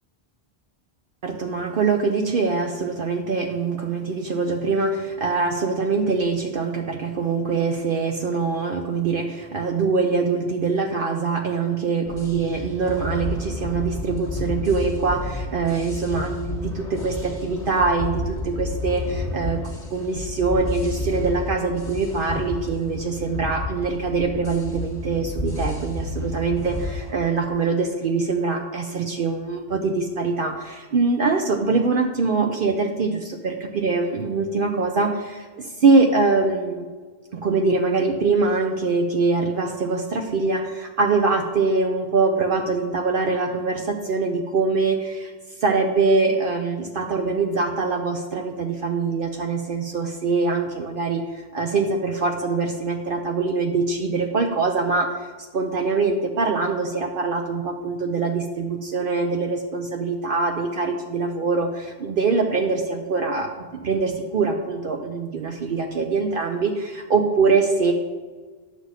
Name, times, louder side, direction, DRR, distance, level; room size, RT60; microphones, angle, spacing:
voice 1, 1.2-19.6 19.9-36.9 37.3-45.3 45.6-55.1 55.5-67.9, right 4 dB, 60° right, 3 dB, 0.8 m, -23 dB
sound 1, 12.1-27.1, left 2 dB, 30° left, 1.4 m, -31 dB
9.4 x 6.3 x 4.0 m, 1.5 s
omnidirectional pair, 1.1 m